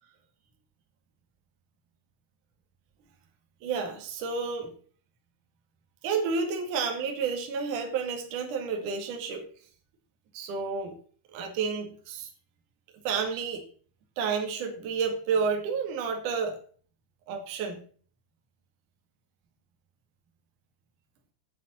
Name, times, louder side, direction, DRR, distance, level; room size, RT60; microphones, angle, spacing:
voice 1, 3.6-4.7 6.0-9.5 10.3-11.0 11.3-12.3 13.0-13.6 14.2-16.6 17.3-17.8, right 5 dB, 50° right, 3 dB, 2.9 m, -30 dB
9.3 x 7.2 x 7.5 m, 0.43 s
omnidirectional pair, 5.8 m